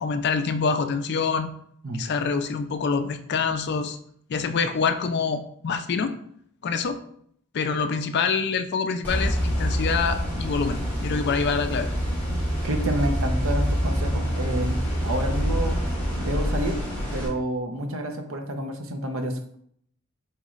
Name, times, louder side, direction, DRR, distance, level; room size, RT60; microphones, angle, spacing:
voice 1, 0.0-1.5 1.9-4.0 4.3-6.2 6.6-7.0 7.5-11.9, left 5 dB, 50° left, 9 dB, 0.4 m, -26 dB
sound 1, 9.0-17.3, equal, 5° left, 1.8 m, -26 dB
voice 2, 12.6-15.8 16.2-16.8 17.1-19.4, right 1 dB, 60° right, 5 dB, 0.7 m, -29 dB
4.5 x 3.7 x 3.1 m, 0.65 s
head